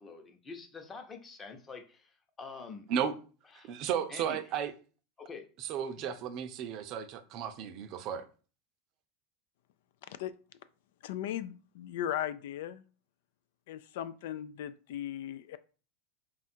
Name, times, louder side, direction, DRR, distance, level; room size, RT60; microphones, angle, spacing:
voice 1, 0.0-2.9 3.5-3.8 4.1-4.4 5.2-5.5, left 4 dB, 25° left, 0.8 m, -46 dB
voice 2, 3.6-4.7 5.6-8.3, right 8 dB, 50° right, 0.5 m, -34 dB
voice 3, 11.0-12.8 13.7-15.6, left 11 dB, 75° left, 0.3 m, -37 dB
3.6 x 2.4 x 4.3 m
supercardioid pair, 120°, 0 cm